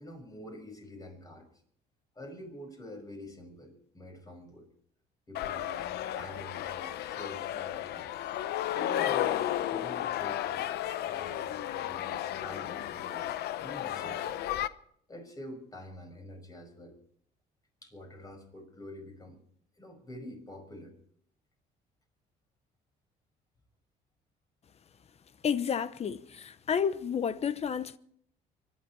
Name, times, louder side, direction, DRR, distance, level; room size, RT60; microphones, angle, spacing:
voice 1, 0.0-1.5 2.2-4.7 5.3-5.9 6.2-8.1 8.7-10.7 11.1-13.3 13.6-14.5 15.1-16.9 17.8-19.4 19.8-20.9, left 1 dB, 20° left, 5.7 m, -46 dB
sound 1, 5.3-14.7, left 12 dB, 75° left, 0.7 m, -33 dB
voice 2, 25.4-28.0, left 7 dB, 40° left, 0.9 m, -31 dB
25.0 x 11.0 x 4.6 m
cardioid pair, 110°, 17 cm